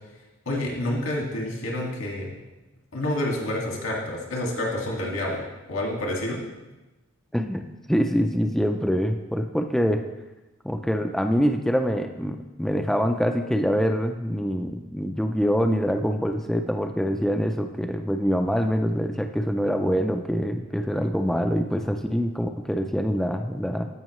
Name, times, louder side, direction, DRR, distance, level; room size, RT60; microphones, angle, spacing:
voice 1, 0.5-2.3 2.9-6.4, left 1 dB, 75° left, -1 dB, 2.0 m, -28 dB
voice 2, 7.3-7.6 7.9-10.0 10.6-23.9, equal, ahead, 5 dB, 0.3 m, -25 dB
14.5 x 5.5 x 3.1 m, 1.1 s
head